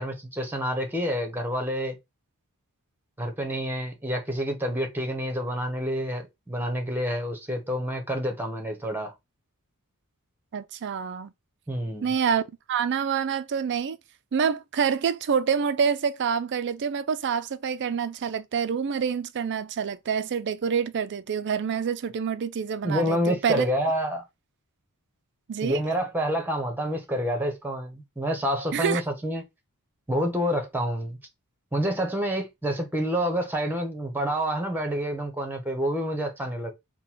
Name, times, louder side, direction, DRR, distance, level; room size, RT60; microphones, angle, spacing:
voice 1, 0.0-2.0 3.2-9.1 11.7-12.1 22.8-24.2 25.6-29.4 30.1-31.2 31.7-36.7, equal, 10° right, 1.0 m, -28 dB
voice 2, 10.5-11.3 12.0-12.4 12.7-14.0 14.3-23.7 25.5-25.8 28.7-29.0, right 7 dB, 55° right, 0.4 m, -27 dB
3.8 x 2.2 x 4.5 m
head